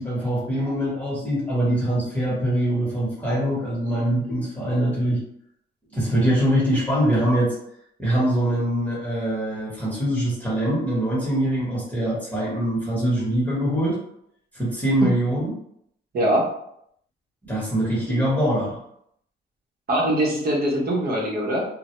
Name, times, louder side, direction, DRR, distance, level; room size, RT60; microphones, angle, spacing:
voice 1, 0.0-5.2 5.9-7.5 8.0-14.0 14.5-15.5 17.5-18.8, right 1 dB, 10° left, -7 dB, 1.0 m, -23 dB
voice 2, 16.1-16.5 19.9-21.7, right 1 dB, 50° right, -2 dB, 0.9 m, -22 dB
2.1 x 2.1 x 2.9 m, 0.72 s
cardioid pair, 90°, 20 cm